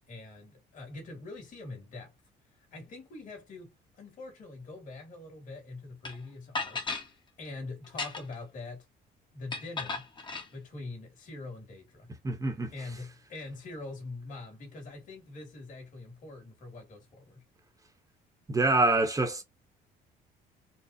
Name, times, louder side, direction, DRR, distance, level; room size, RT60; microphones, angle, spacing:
voice 1, 0.1-2.1 2.7-7.1 7.4-8.8 9.3-10.1 10.5-12.1 12.7-17.4, left 3 dB, 50° left, 2.5 m, -44 dB
sound 1, 6.0-6.1 6.5-7.1 7.8-8.4 9.5-10.5, left 3 dB, 30° left, 1.2 m, -35 dB
voice 2, 12.2-12.7 18.5-19.4, right 2 dB, 20° right, 1.1 m, -25 dB
4.6 x 2.3 x 2.7 m
cardioid pair, 110°, 17 cm